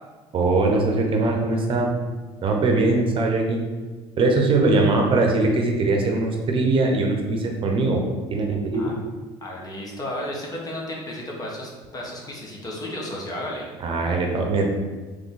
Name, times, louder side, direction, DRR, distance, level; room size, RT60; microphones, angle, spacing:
voice 1, 0.3-1.9 2.4-3.6 4.2-8.0 8.3-8.9 13.8-14.8, right 3 dB, 45° right, 2 dB, 0.8 m, -21 dB
voice 2, 9.4-13.7, left 1 dB, 30° left, -2 dB, 1.3 m, -33 dB
3.8 x 3.4 x 3.9 m, 1.3 s
supercardioid pair, 90°, 12 cm